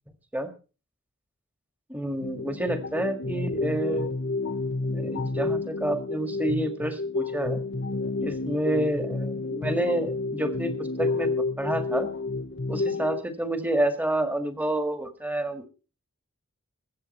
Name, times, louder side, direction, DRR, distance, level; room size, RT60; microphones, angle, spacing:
voice 1, 1.9-4.1 4.9-7.6 8.2-12.1 12.7-15.7, right 1 dB, 10° right, 8 dB, 1.7 m, -29 dB
sound 1, 2.2-13.2, left 3 dB, 60° left, 1.0 m, -30 dB
22.0 x 8.2 x 4.2 m, 0.34 s
head